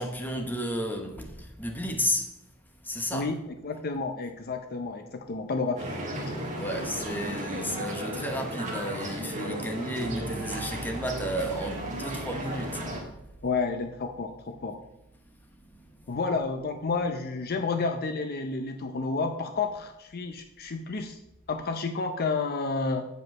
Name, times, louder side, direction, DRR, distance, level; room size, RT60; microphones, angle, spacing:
voice 1, 0.0-2.3 2.8-3.3 6.6-13.1 15.6-16.2, equal, 10° left, 0.9 m, -33 dB
voice 2, 3.1-5.9 13.4-14.8 16.1-21.2 21.5-23.1, left 4 dB, 45° left, 0.6 m, -30 dB
sound 1, 5.8-13.0, right 1 dB, 35° right, 1.7 m, -35 dB
sound 2, 10.0-15.7, right 3 dB, 75° right, 0.6 m, -46 dB
7.9 x 5.2 x 5.9 m
head